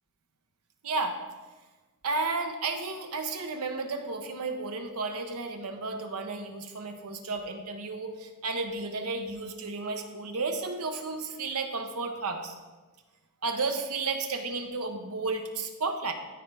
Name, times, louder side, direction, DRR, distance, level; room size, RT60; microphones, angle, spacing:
voice 1, 0.8-1.2 2.0-12.5 13.4-16.1, right 3 dB, 75° right, 5 dB, 0.9 m, -32 dB
14.0 x 4.7 x 3.4 m, 1.3 s
head